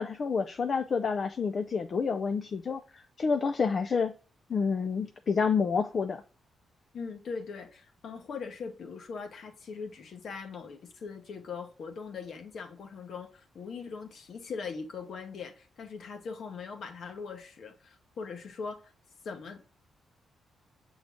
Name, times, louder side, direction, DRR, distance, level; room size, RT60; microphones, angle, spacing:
voice 1, 0.0-4.1 4.5-6.2, left 5 dB, 45° left, 0.4 m, -29 dB
voice 2, 6.9-18.9 19.2-19.7, left 5 dB, 60° left, 1.1 m, -41 dB
7.3 x 3.8 x 3.5 m
cardioid pair, 135°, 0 cm